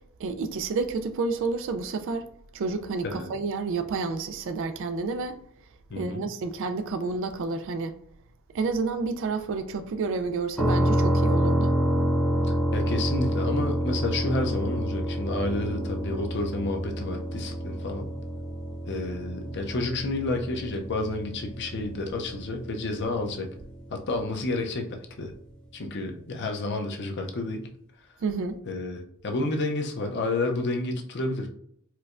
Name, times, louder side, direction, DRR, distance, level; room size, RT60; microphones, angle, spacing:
voice 1, 0.2-2.3 2.5-5.4 5.9-7.9 8.5-11.8 28.2-28.6, right 4 dB, 60° right, 0.4 m, -30 dB
voice 2, 5.9-6.2 12.7-18.1 18.9-23.5 23.9-25.3 25.7-27.7 28.6-31.5, left 2 dB, 55° left, 0.6 m, -30 dB
sound 1, 10.6-24.3, right 1 dB, 5° left, 0.6 m, -28 dB
4.5 x 2.2 x 2.4 m
head